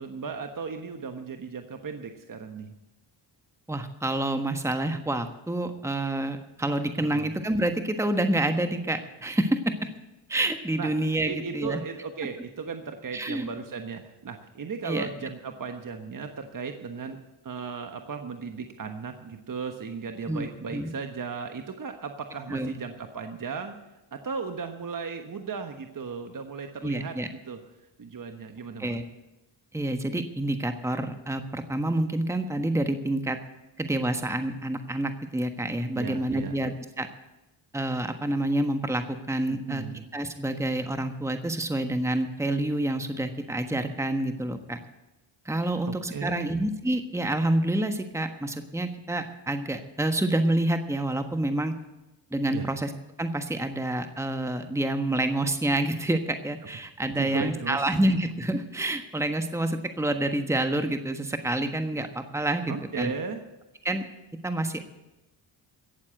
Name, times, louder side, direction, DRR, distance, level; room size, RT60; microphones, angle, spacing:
voice 1, 0.0-2.7 7.0-7.3 10.8-10.9 11.2-17.2 17.4-23.7 24.1-27.2 27.5-27.6 28.0-29.0 35.9-36.7 39.5-40.1 45.8-46.6 52.5-52.7 57.1-57.8 62.7-63.4, right 5 dB, 40° right, 6 dB, 1.3 m, -36 dB
voice 2, 3.7-9.7 10.3-11.8 13.1-13.5 14.8-15.1 20.3-20.4 20.7-20.9 22.5-22.8 26.8-27.3 28.8-29.0 29.7-33.4 33.8-37.1 37.7-39.8 40.1-44.8 45.4-51.7 52.3-52.9 53.2-63.1 63.8-64.1 64.4-64.8, right 1 dB, 5° right, 7 dB, 1.3 m, -28 dB
17.5 x 7.4 x 7.8 m, 1.0 s
supercardioid pair, 50°, 50 cm